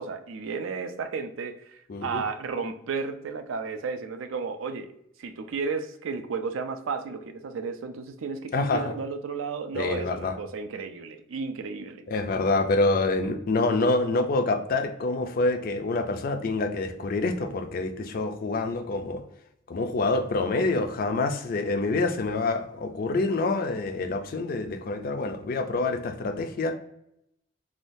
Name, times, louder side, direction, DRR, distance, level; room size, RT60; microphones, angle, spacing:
voice 1, 0.0-4.9 5.2-12.1, right 5 dB, 75° right, 8 dB, 0.4 m, -33 dB
voice 2, 1.9-2.2 8.5-8.8 9.7-10.4 12.1-19.2 19.7-26.7, left 3 dB, 45° left, 6 dB, 0.3 m, -26 dB
3.5 x 2.3 x 2.5 m, 0.77 s
head